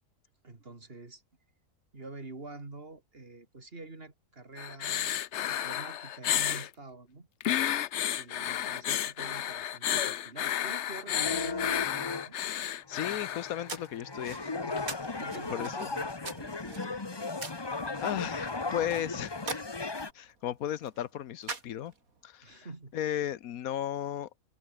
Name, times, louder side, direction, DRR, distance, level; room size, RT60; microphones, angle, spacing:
voice 1, 0.4-1.2 1.9-5.2 5.5-7.3 8.1-12.4 15.0-17.4 22.4-22.9, right 3 dB, 45° right, 3.1 m, -47 dB
sound 1, 4.6-6.7 7.4-13.7 14.8-14.9, left 11 dB, 60° left, 0.9 m, -32 dB
sound 2, 11.0-12.3 12.9-20.1, left 3 dB, 20° left, 0.9 m, -36 dB
voice 2, 12.5-14.7 15.5-15.9 18.0-19.4 20.1-21.9 22.2-22.7 22.9-24.3, left 11 dB, 85° left, 1.3 m, -35 dB
sound 3, 12.9-22.2, right 3 dB, 80° right, 3.7 m, -45 dB
omnidirectional pair, 1.5 m